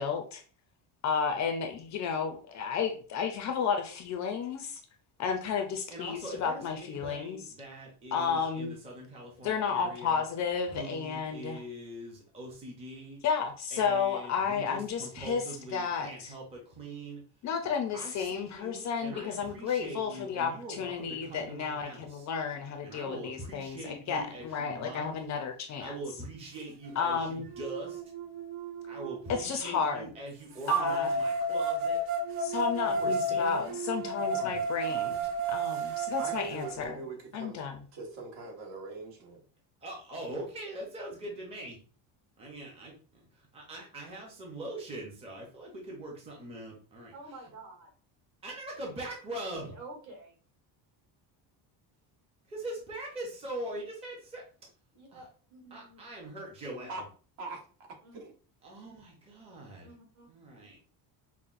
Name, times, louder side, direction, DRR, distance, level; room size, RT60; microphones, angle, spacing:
voice 1, 1.0-4.8 5.2-7.4 8.1-8.8 9.4-11.6 13.2-15.4 15.7-16.3 17.4-25.9 27.0-27.5 29.3-30.1 30.7-31.1 32.4-35.2 35.5-37.0 37.3-37.8, left 6 dB, 40° left, 5 dB, 0.4 m, -32 dB
voice 2, 5.9-10.2 10.7-13.2 13.7-17.2 17.9-22.3 22.8-25.1 25.8-28.0 28.8-32.0 32.8-33.8 34.1-35.2 39.8-41.8 42.4-42.9 43.3-47.4 48.4-49.7 52.5-54.4 55.1-55.2 55.7-57.1 58.6-59.9 60.3-60.7, right 1 dB, 15° right, -1 dB, 0.6 m, -42 dB
sound 1, 26.9-27.0 27.5-29.4 30.7-36.7, right 2 dB, 90° right, 0.9 m, -32 dB
voice 3, 36.2-39.4 56.9-57.0 57.4-57.6 58.1-58.3, right 3 dB, 75° right, 0 dB, 1.3 m, -42 dB
voice 4, 47.1-47.9 49.5-50.4 54.9-56.0 56.8-56.9 58.0-58.2 59.8-60.3, right 2 dB, 40° right, 0 dB, 1.4 m, -49 dB
5.5 x 2.0 x 2.4 m, 0.40 s
cardioid pair, 175°, 44 cm